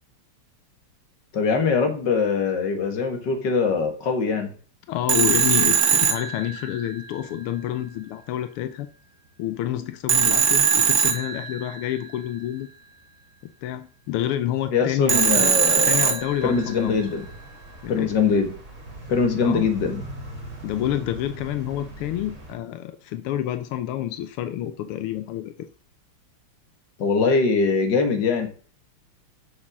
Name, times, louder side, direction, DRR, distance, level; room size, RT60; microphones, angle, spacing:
voice 1, 1.3-4.5 14.7-16.1 16.4-17.3 17.9-18.5 19.1-20.0 27.0-28.5, left 5 dB, 55° left, 2.2 m, -22 dB
voice 2, 4.9-8.9 9.4-12.7 13.6-15.5 15.8-17.0 17.8-18.1 19.4-19.7 20.6-25.5, left 12 dB, 90° left, 1.6 m, -28 dB
Telephone, 5.1-7.0 10.1-11.9 15.1-16.8, right 7 dB, 55° right, 1.3 m, -21 dB
sound 1, 16.2-22.6, right 2 dB, 35° right, 2.7 m, -41 dB
7.0 x 6.6 x 6.1 m
omnidirectional pair, 2.4 m